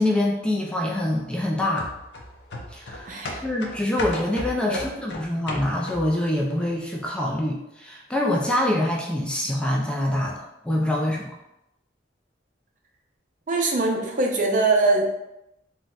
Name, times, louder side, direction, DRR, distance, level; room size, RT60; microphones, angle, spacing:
voice 1, 0.0-1.9 2.7-3.1 3.4-11.3, left 1 dB, 5° left, -2 dB, 0.3 m, -25 dB
sound 1, 1.8-6.2 6.6-6.7, left 2 dB, 70° left, 0.5 m, -35 dB
voice 2, 3.0-3.4 4.7-4.9 13.5-15.1, right 3 dB, 50° right, 1 dB, 0.5 m, -22 dB
3.9 x 2.1 x 2.4 m, 0.88 s
head